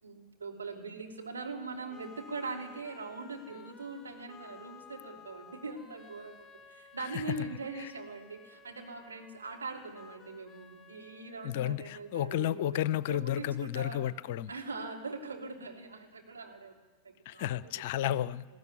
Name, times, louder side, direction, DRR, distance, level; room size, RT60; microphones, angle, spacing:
voice 1, 0.0-6.4 6.7-12.8 13.1-14.1 14.5-16.7 17.0-17.7, right 3 dB, 75° right, 0 dB, 3.3 m, -42 dB
sound 1, 1.3-12.3, left 6 dB, 15° left, 1.1 m, -55 dB
voice 2, 7.0-7.4 7.8-7.9 11.4-14.5 17.3-18.5, left 12 dB, 50° left, 19 dB, 0.6 m, -32 dB
20.5 x 15.5 x 9.8 m, 1.3 s
figure-of-eight pair, 90°, 0 cm